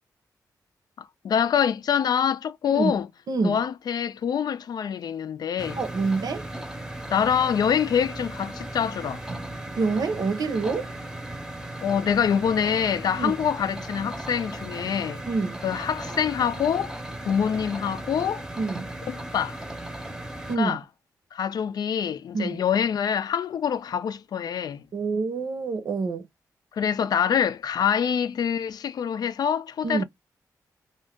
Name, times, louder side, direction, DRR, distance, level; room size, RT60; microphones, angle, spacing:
voice 1, 1.0-3.1 3.4-5.8 7.1-9.2 11.8-15.2 15.6-17.0 17.2-18.5 19.1-19.6 20.6-20.8 21.3-24.8 26.7-30.0, left 8 dB, 70° left, 0.4 m, -25 dB
voice 2, 2.6-3.0 3.3-3.6 5.8-6.5 9.7-10.9 13.2-13.3 15.3-15.6 18.6-18.9 20.5-20.8 22.3-22.6 24.9-26.3 29.8-30.0, right 4 dB, 65° right, 0.7 m, -26 dB
sound 1, 5.6-20.6, right 1 dB, 5° right, 0.7 m, -37 dB
2.6 x 2.4 x 3.5 m
cardioid pair, 100°, 7 cm